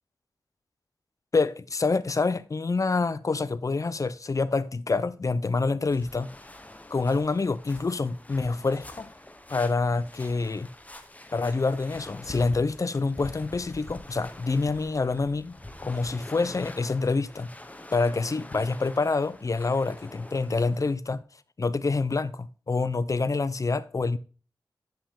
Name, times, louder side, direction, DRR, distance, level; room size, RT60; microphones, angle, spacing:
voice 1, 1.3-6.3 6.9-9.1 9.5-10.7 11.3-17.5 17.9-21.2 21.6-24.2, left 3 dB, 45° left, 0.5 m, -27 dB
sound 1, 5.9-20.9, left 1 dB, 20° left, 0.9 m, -45 dB
10.0 x 5.4 x 3.6 m
wide cardioid pair, 70°, 8 cm